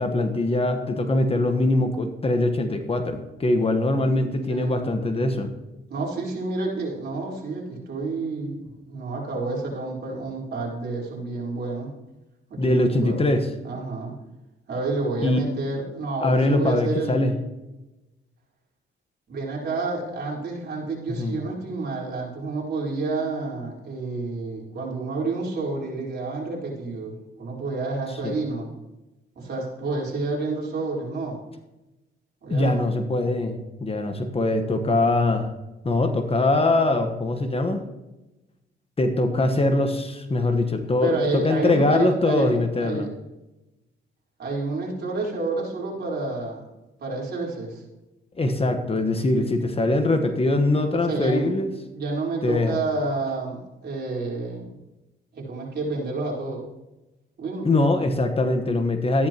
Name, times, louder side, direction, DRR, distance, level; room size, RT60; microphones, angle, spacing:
voice 1, 0.0-5.5 12.6-13.5 15.2-15.4 16.2-17.3 21.1-21.4 28.2-28.3 32.5-33.5 33.8-35.5 35.8-37.8 39.0-43.1 48.4-51.7 52.4-52.8 57.6-59.3, left 2 dB, 30° left, 6 dB, 1.3 m, -22 dB
voice 2, 4.5-4.8 5.9-11.9 12.5-13.2 13.6-14.1 14.7-17.2 19.3-28.7 29.3-31.4 32.4-32.8 41.0-43.1 44.4-46.6 47.0-47.8 51.0-51.5 51.9-54.7 55.3-56.7 57.4-57.7, right 3 dB, 55° right, -3 dB, 4.2 m, -29 dB
14.0 x 10.0 x 3.0 m, 1.0 s
cardioid pair, 90°, 20 cm